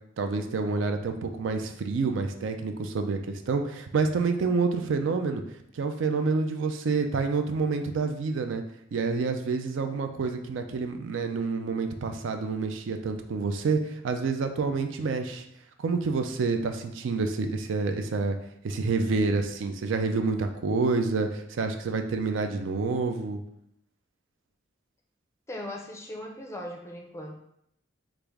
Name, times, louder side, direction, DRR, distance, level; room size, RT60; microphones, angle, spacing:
voice 1, 0.2-5.4 5.7-8.6 8.9-15.4 15.8-18.4 18.6-23.4, right 4 dB, 75° right, 6 dB, 0.4 m, -28 dB
voice 2, 25.5-27.4, left 1 dB, 15° left, 1 dB, 0.4 m, -38 dB
3.2 x 2.5 x 3.5 m, 0.73 s
head